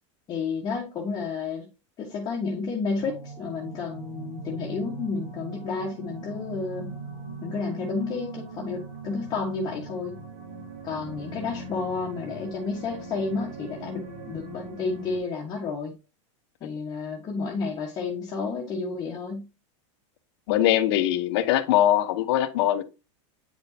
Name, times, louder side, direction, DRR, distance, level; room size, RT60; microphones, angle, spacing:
voice 1, 0.3-1.7 2.0-6.9 7.4-10.1 10.8-15.9 16.6-19.5, left 4 dB, 25° left, 1.5 m, -31 dB
sound 1, 3.0-15.2, right 3 dB, 85° right, 3.7 m, -40 dB
voice 2, 20.5-22.8, left 12 dB, 55° left, 1.1 m, -22 dB
9.4 x 5.2 x 2.8 m
supercardioid pair, 160°, 16 cm